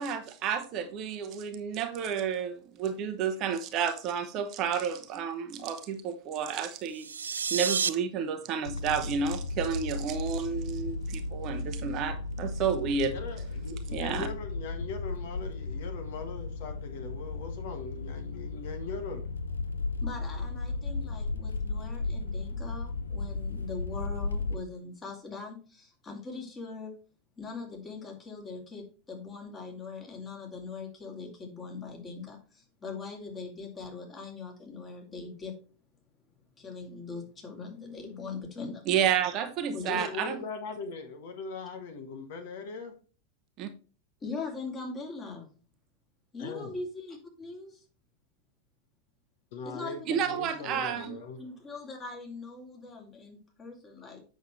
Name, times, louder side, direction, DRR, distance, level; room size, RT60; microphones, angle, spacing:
voice 1, 0.0-13.1 13.9-14.3 38.9-40.4 43.6-43.7 50.1-51.2, right 7 dB, 35° right, 0.9 m, -31 dB
sound 1, 6.8-7.9, right 6 dB, 70° right, 0.5 m, -30 dB
sound 2, 8.7-24.6, left 3 dB, 75° left, 0.6 m, -35 dB
voice 2, 13.1-19.3 39.8-42.9 46.4-46.8 49.5-51.4, left 4 dB, 55° left, 1.4 m, -40 dB
voice 3, 20.0-26.9 27.4-35.6 36.6-38.9 39.7-40.1 44.2-45.5 46.3-47.8 49.6-50.8 51.4-54.2, left 4 dB, 20° left, 2.7 m, -41 dB
8.0 x 6.4 x 3.1 m
figure-of-eight pair, 90°, 0 cm